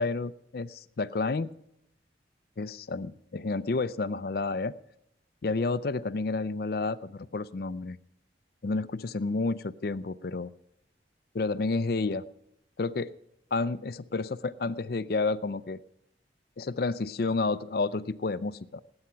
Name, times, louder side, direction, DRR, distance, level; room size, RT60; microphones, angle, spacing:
voice 1, 0.0-1.5 2.6-4.7 5.4-8.0 8.6-10.5 11.3-12.2 12.8-13.1 13.5-15.8 16.6-18.8, left 3 dB, 55° left, 15 dB, 0.5 m, -30 dB
18.5 x 8.8 x 5.7 m, 0.80 s
head